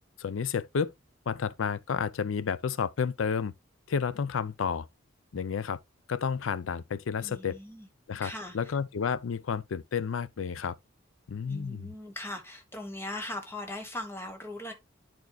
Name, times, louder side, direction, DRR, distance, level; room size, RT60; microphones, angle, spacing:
voice 1, 0.2-0.9 1.3-3.5 3.9-4.9 5.3-5.8 6.1-7.6 8.1-10.8 11.3-11.9, left 6 dB, 75° left, 0.5 m, -31 dB
voice 2, 7.2-7.9 8.2-8.8 11.4-14.7, left 1 dB, 10° left, 1.3 m, -39 dB
10.5 x 4.5 x 2.3 m
head